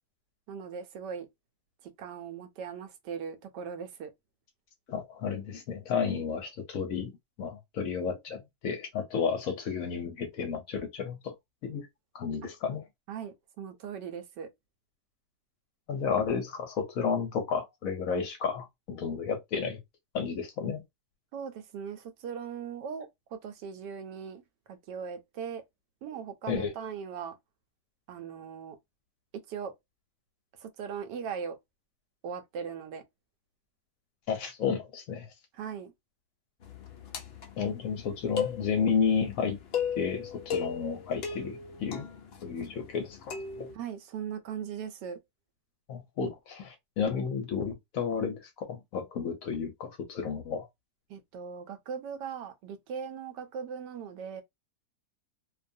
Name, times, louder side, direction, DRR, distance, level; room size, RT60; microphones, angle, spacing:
voice 1, 0.5-1.3 1.8-4.1 12.4-12.5 13.1-14.5 21.3-24.4 24.7-25.6 26.0-27.4 28.1-28.8 29.5-29.7 30.6-31.6 32.2-33.0 35.5-35.9 43.7-45.2 51.1-54.4, right 7 dB, 85° right, 1.2 m, -39 dB
voice 2, 4.9-7.1 7.4-11.3 11.6-11.9 12.1-12.8 15.9-19.8 20.1-20.8 26.5-26.7 34.3-35.3 37.6-39.6 40.0-42.1 42.4-43.7 45.9-50.6, left 6 dB, 65° left, 0.9 m, -32 dB
sound 1, 36.6-43.7, left 7 dB, 90° left, 0.5 m, -37 dB
2.6 x 2.3 x 2.6 m
omnidirectional pair, 1.8 m